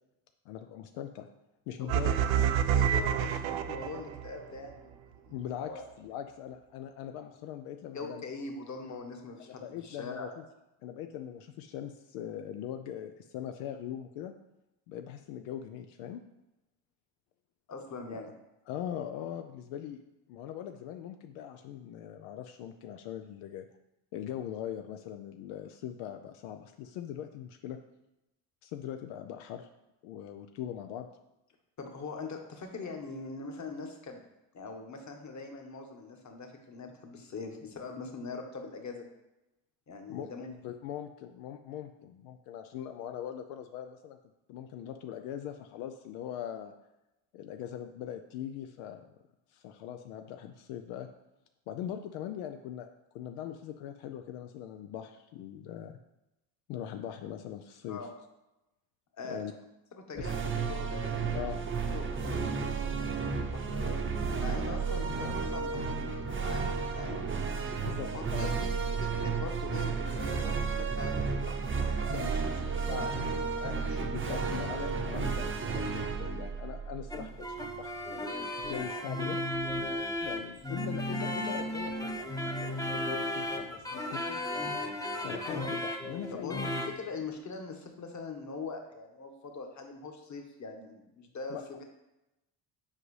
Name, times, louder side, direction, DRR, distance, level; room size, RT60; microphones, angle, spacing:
voice 1, 0.5-1.3 1.7-2.1 5.3-5.7 6.0-8.2 9.5-10.4 10.8-14.3 14.9-16.2 18.1-18.2 18.7-20.0 20.3-23.7 24.1-27.8 28.6-29.7 30.0-31.1 40.1-44.2 44.5-46.7 47.3-49.0 49.5-51.1 51.7-52.9 53.1-56.0 56.7-58.0 59.3-59.5 60.1-60.3 61.3-61.6 67.8-68.6 74.1-77.9 78.6-79.4 80.2-82.3 82.6-84.4 85.2-86.7 91.5-91.8, left 10 dB, 80° left, 6 dB, 0.6 m, -41 dB
voice 2, 1.8-2.5 2.7-5.8 7.9-10.3 17.7-18.3 31.8-34.2 34.5-39.0 39.9-40.5 57.9-58.1 59.2-59.4 60.0-61.6 61.9-64.0 64.4-66.1 66.4-67.2 68.1-68.7 69.0-74.2 86.3-86.6 86.9-91.8, left 4 dB, 35° left, 3 dB, 1.3 m, -42 dB
sound 1, 1.9-4.3, right 9 dB, 70° right, 0.6 m, -27 dB
sound 2, 60.1-77.6, right 5 dB, 25° right, 0.7 m, -32 dB
sound 3, 77.1-87.0, left 1 dB, 5° left, 0.8 m, -35 dB
7.6 x 4.8 x 3.2 m, 0.94 s
supercardioid pair, 90°, 48 cm